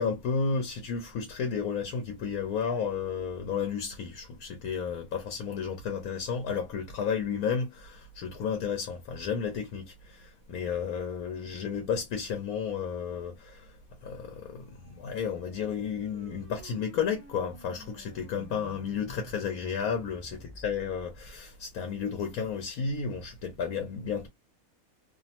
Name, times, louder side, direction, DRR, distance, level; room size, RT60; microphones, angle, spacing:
voice 1, 0.0-24.3, left 6 dB, 85° left, 1.1 m, -32 dB
sound 1, 14.5-21.4, right 1 dB, 10° right, 0.7 m, -52 dB
2.8 x 2.0 x 2.8 m
omnidirectional pair, 1.5 m